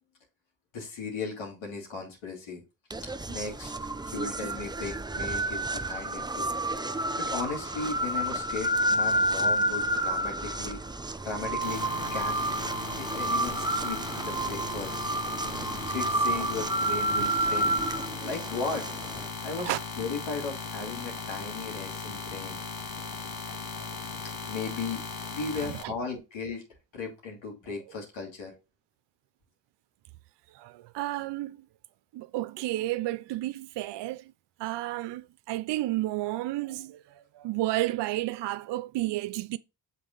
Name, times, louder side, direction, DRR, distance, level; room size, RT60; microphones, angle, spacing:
voice 1, 0.7-2.6 3.3-3.7 4.0-6.5 7.2-10.8 11.2-12.4 13.0-15.0 15.5-18.9 19.4-22.6 24.2-25.0 25.3-26.6 26.9-28.5, left 4 dB, 75° left, 2.8 m, -36 dB
sound 1, 2.9-19.3, right 1 dB, 10° right, 0.5 m, -30 dB
sound 2, 11.6-25.8, left 4 dB, 50° left, 1.6 m, -38 dB
voice 2, 15.5-15.9 17.2-17.5 19.6-19.8 25.5-25.9 27.7-27.8 30.5-31.7 32.1-34.3 34.6-39.6, right 16 dB, 65° right, 0.5 m, -32 dB
6.2 x 4.1 x 3.8 m
supercardioid pair, 45°, 46 cm